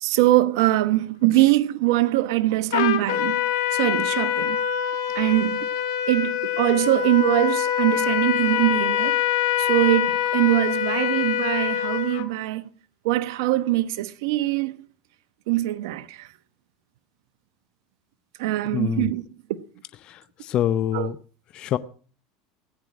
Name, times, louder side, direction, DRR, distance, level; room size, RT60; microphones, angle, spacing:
voice 1, 0.0-3.4 3.7-4.6 5.1-5.7 6.1-9.2 9.6-12.6 13.0-14.9 15.5-16.3 18.4-19.2 19.5-19.6 20.9-21.1, right 16 dB, 75° right, 1.0 m, -22 dB
Trumpet, 2.7-12.3, left 10 dB, 80° left, 2.1 m, -24 dB
voice 2, 18.7-19.1 20.0-21.2 21.5-21.8, left 11 dB, 45° left, 0.7 m, -26 dB
17.5 x 9.7 x 6.2 m
supercardioid pair, 105°, 2 cm